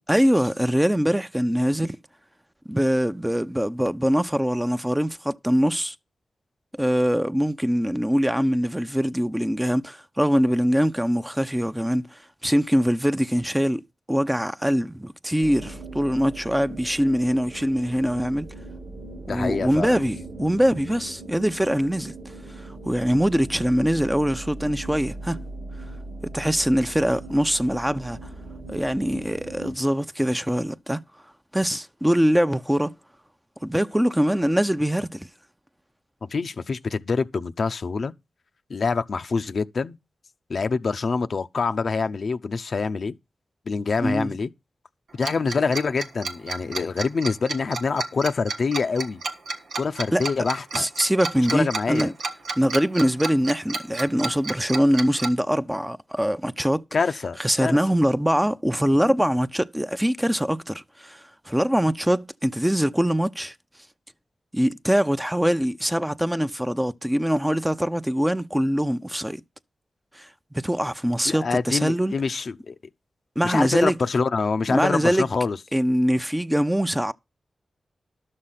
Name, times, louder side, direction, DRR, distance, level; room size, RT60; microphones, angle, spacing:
voice 1, 0.1-2.0 2.7-5.9 6.8-13.8 14.1-18.5 19.3-22.1 22.8-25.5 26.2-28.2 28.7-31.0 31.5-32.9 33.6-35.3 44.0-44.3 50.1-50.2 50.7-52.1 52.6-56.8 57.4-63.5 64.5-69.4 70.2-70.3 70.6-72.1 73.4-74.0 74.7-75.3 75.7-77.1, equal, 10° right, 0.7 m, -23 dB
sound 1, 15.4-29.7, right 2 dB, 65° right, 1.3 m, -39 dB
voice 2, 19.3-20.0 36.2-38.1 38.7-40.0 40.5-43.1 43.7-44.5 45.1-49.2 49.8-50.9 51.5-52.1 56.9-57.8 71.2-72.8 73.4-75.6, left 4 dB, 65° left, 0.7 m, -25 dB
Tick-tock, 45.2-55.3, right 3 dB, 85° right, 1.4 m, -30 dB
11.5 x 6.6 x 5.7 m
cardioid pair, 40°, 0 cm